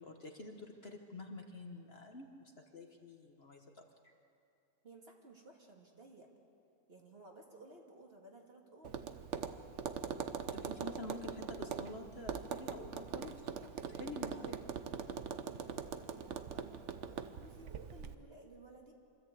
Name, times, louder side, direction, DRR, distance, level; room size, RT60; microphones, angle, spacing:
voice 1, 0.0-3.8 10.5-13.5 13.9-14.6, left 2 dB, 45° left, 3 dB, 1.4 m, -48 dB
voice 2, 4.8-6.3 6.9-9.6 13.5-18.9, right 2 dB, 40° right, 0 dB, 2.3 m, -58 dB
Tap, 8.8-18.2, right 7 dB, 55° right, 1.0 m, -42 dB
25.5 x 13.5 x 8.3 m, 2.6 s
omnidirectional pair, 1.6 m